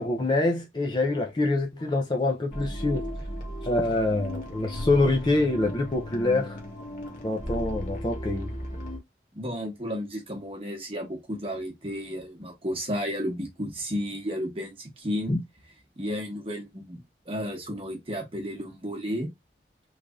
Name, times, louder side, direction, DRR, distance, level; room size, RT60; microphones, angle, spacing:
voice 1, 0.0-3.0 3.6-6.6 7.2-8.5 15.3-15.4, left 2 dB, 25° left, 0.4 m, -25 dB
sound 1, 2.5-9.0, equal, 45° left, 1.0 m, -35 dB
voice 2, 9.3-15.4 16.0-17.0 17.2-19.3, equal, 30° right, 1.0 m, -32 dB
3.3 x 2.4 x 3.5 m
head